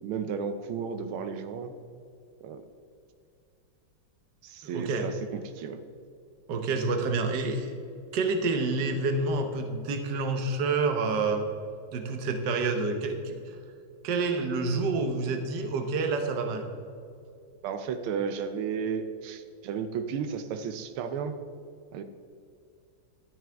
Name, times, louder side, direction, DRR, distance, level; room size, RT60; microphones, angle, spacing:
voice 1, 0.0-1.7 2.4-2.6 4.4-5.8 17.6-21.4 21.9-22.0, right 6 dB, 90° right, 9 dB, 1.6 m, -33 dB
voice 2, 4.7-5.1 6.5-7.7 8.1-11.4 11.9-13.4 14.0-16.7, right 3 dB, 60° right, 5 dB, 1.5 m, -28 dB
12.0 x 10.5 x 3.4 m, 2.5 s
omnidirectional pair, 2.3 m